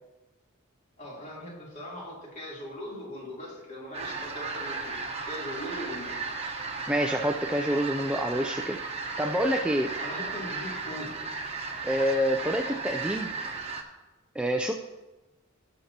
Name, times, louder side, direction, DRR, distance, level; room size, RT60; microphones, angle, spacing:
voice 1, 1.0-5.0 5.3-6.2 10.0-11.2, equal, 35° left, -5 dB, 3.2 m, -40 dB
sound 1, 3.9-13.8, right 4 dB, 30° right, 1.0 m, -35 dB
voice 2, 6.9-8.8 9.2-9.9 11.8-13.3 14.4-14.7, equal, 5° right, 3 dB, 0.4 m, -27 dB
18.5 x 6.6 x 2.9 m, 1.1 s
head